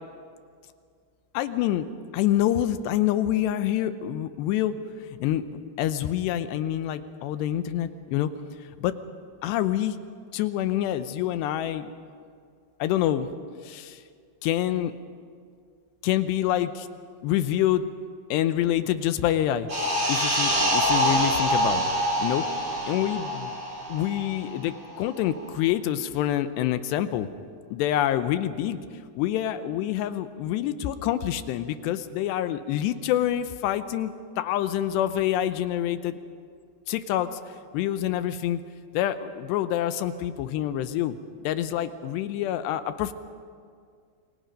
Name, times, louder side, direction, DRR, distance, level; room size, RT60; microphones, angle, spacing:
voice 1, 1.3-1.9 2.1-4.8 5.2-8.3 8.8-8.9 9.4-10.0 10.3-11.9 12.8-13.3 13.6-14.0 14.4-14.9 16.0-16.9 17.2-17.9 18.3-19.7 20.1-22.4 22.9-23.6 23.9-27.3 27.7-28.8 29.2-36.1 36.9-37.4 37.7-38.6 38.9-41.2 41.4-43.1, left 12 dB, 80° left, 11 dB, 2.8 m, -26 dB
sound 1, 19.7-24.8 25.0-25.2, equal, 25° right, 7.3 m, -25 dB
28.0 x 23.0 x 5.2 m, 2.1 s
omnidirectional pair, 5.1 m